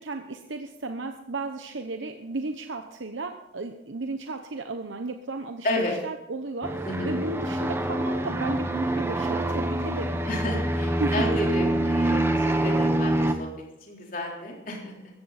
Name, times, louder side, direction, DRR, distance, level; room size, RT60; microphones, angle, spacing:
voice 1, 0.0-10.2 11.0-11.4, right 3 dB, 85° right, 6 dB, 0.9 m, -34 dB
voice 2, 5.6-5.9 6.8-7.1 10.3-13.5 13.8-14.9, left 1 dB, 45° left, -1 dB, 3.8 m, -31 dB
sound 1, 6.6-13.3, right 1 dB, 15° right, 1.0 m, -25 dB
15.0 x 15.0 x 4.2 m, 0.85 s
head